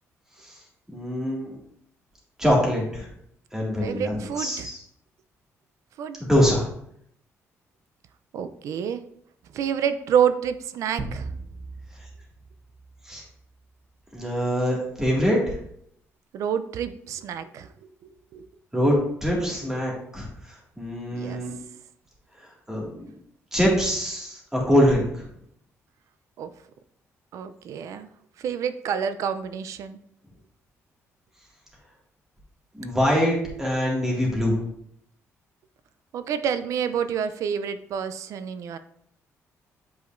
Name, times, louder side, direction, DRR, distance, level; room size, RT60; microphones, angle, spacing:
voice 1, 0.9-1.6 2.4-3.1 3.5-4.8 6.2-6.7 13.1-13.2 14.1-15.6 18.7-18.9 19.2-21.5 22.7-23.1 23.5-25.3 32.7-34.6, equal, 10° right, -3 dB, 2.0 m, -24 dB
voice 2, 3.8-4.7 6.0-6.2 8.3-9.0 9.5-11.3 16.3-17.7 18.3-18.5 21.1-21.4 26.4-26.5 27.3-28.1 28.4-30.0 36.1-38.8, right 8 dB, 70° right, 11 dB, 0.5 m, -28 dB
sound 1, 11.0-13.5, right 3 dB, 35° right, 0.9 m, -38 dB
8.1 x 4.9 x 2.6 m, 0.70 s
cardioid pair, 135°, 6 cm